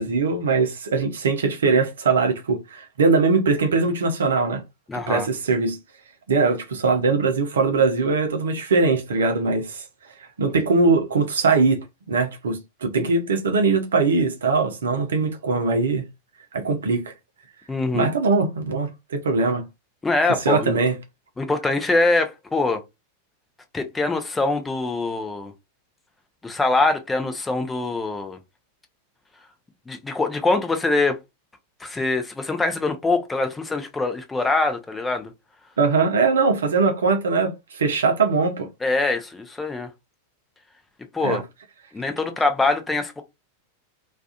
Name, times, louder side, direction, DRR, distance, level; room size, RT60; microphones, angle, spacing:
voice 1, 0.0-4.6 5.1-5.8 6.3-9.8 10.4-16.1 16.5-17.1 17.9-19.7 20.4-21.0 35.8-38.7 41.2-41.4, right 4 dB, 65° right, 0.7 m, -21 dB
voice 2, 4.9-5.3 17.7-18.1 20.0-20.8 21.4-22.8 23.7-25.5 26.4-28.4 29.9-31.2 31.8-35.3 38.8-39.9 41.1-41.4 41.9-43.2, left 3 dB, 10° left, 0.6 m, -23 dB
2.4 x 2.4 x 2.5 m
figure-of-eight pair, 90°, 0 cm